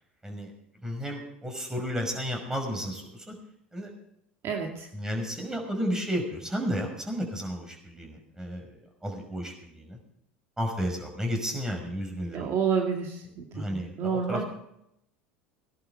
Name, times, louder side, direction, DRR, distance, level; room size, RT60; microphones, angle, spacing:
voice 1, 0.8-3.3 3.7-3.9 4.9-10.0 10.6-12.5 13.5-14.5, equal, 10° right, 2 dB, 5.7 m, -33 dB
voice 2, 4.4-4.9 12.3-14.4, right 6 dB, 45° right, 1 dB, 2.5 m, -29 dB
19.0 x 11.0 x 4.6 m, 0.77 s
hypercardioid pair, 80°, 6 cm